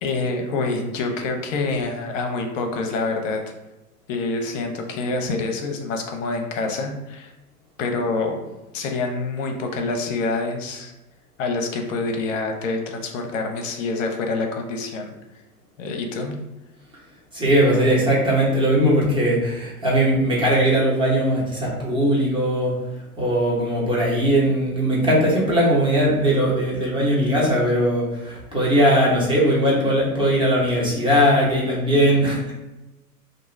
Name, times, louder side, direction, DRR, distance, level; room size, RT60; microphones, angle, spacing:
voice 1, 0.0-3.4 4.1-7.3 7.8-8.4 8.7-10.9 11.4-15.1 15.8-16.3, left 3 dB, 55° left, 4 dB, 0.7 m, -26 dB
voice 2, 17.3-22.7 23.2-32.5, equal, 10° right, -6 dB, 0.9 m, -19 dB
2.5 x 2.2 x 3.2 m, 1.0 s
hypercardioid pair, 100°, 46 cm